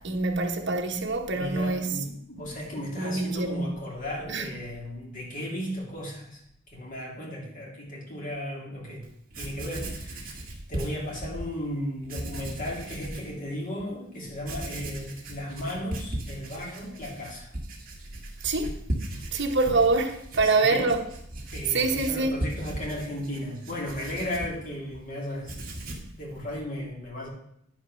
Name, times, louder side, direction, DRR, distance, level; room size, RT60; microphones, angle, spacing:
voice 1, 0.0-1.9 3.0-3.8 4.3-4.5 18.4-18.7 19.3-21.0 21.7-22.4, right 3 dB, 60° right, 1.2 m, -25 dB
voice 2, 1.3-6.4 6.7-9.1 9.3-10.4 10.7-17.5 19.1-19.3 20.4-20.9 21.5-25.6 26.2-27.3, left 1 dB, 45° left, 3.0 m, -35 dB
Writing, 9.0-9.1 9.3-11.5 12.0-13.3 13.8-13.9 14.4-25.0 25.3-26.1, right 1 dB, 45° right, 1.8 m, -37 dB
9.8 x 5.1 x 6.2 m
head